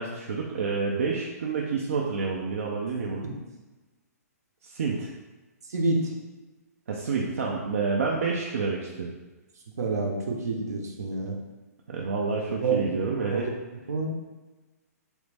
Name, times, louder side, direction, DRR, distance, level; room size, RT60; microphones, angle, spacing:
voice 1, 0.0-3.3 4.6-5.1 6.9-9.1 11.9-13.5, right 4 dB, 55° right, -2 dB, 0.5 m, -29 dB
voice 2, 5.7-6.1 9.8-11.4 12.6-13.5 13.9-14.1, right 3 dB, 70° right, 1 dB, 0.9 m, -28 dB
4.0 x 3.1 x 3.4 m, 1.2 s
hypercardioid pair, 175°, 9 cm